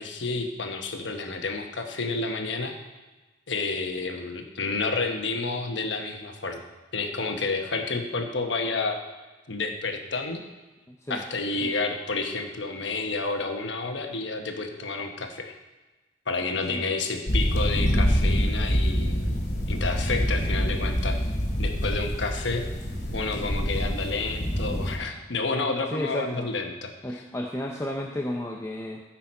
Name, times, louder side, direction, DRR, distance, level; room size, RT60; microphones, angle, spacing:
voice 1, 0.0-2.8 3.5-6.6 6.9-9.0 9.5-10.4 11.1-15.5 16.3-19.4 19.7-21.2 21.6-22.7 23.1-27.2, left 3 dB, 75° left, 4 dB, 1.1 m, -30 dB
voice 2, 10.9-11.2 11.6-11.7 16.7-16.8 25.9-26.5 27.0-29.0, left 1 dB, 15° left, 1 dB, 0.6 m, -32 dB
sound 1, 17.3-25.0, equal, 55° left, 2.4 m, -26 dB
14.0 x 5.8 x 4.3 m, 1.2 s
head